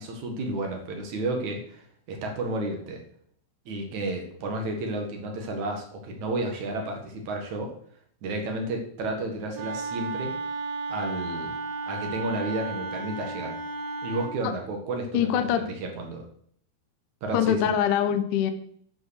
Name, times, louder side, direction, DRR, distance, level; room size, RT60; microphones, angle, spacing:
voice 1, 0.0-3.0 3.7-7.7 8.2-10.3 10.9-11.5 11.8-13.5 14.0-16.2 17.2-17.7, right 2 dB, 55° right, 2 dB, 2.5 m, -32 dB
Wind instrument woodwind instrument, 9.5-14.4, right 3 dB, 70° right, 2.6 m, -33 dB
voice 2, 15.1-15.6 17.3-18.5, left 10 dB, 85° left, 9 dB, 1.8 m, -23 dB
11.0 x 5.5 x 6.5 m, 0.63 s
omnidirectional pair, 5.1 m